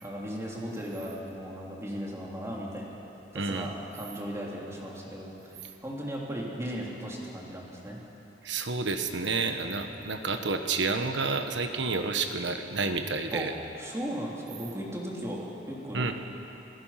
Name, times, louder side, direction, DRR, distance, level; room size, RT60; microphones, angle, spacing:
voice 1, 0.0-3.0 3.3-8.0 13.3-13.5 13.8-16.1, equal, 15° right, -4 dB, 3.3 m, -37 dB
voice 2, 3.3-3.7 8.4-13.5 15.9-16.1, right 4 dB, 75° right, 6 dB, 1.4 m, -30 dB
27.0 x 16.5 x 5.9 m, 2.9 s
head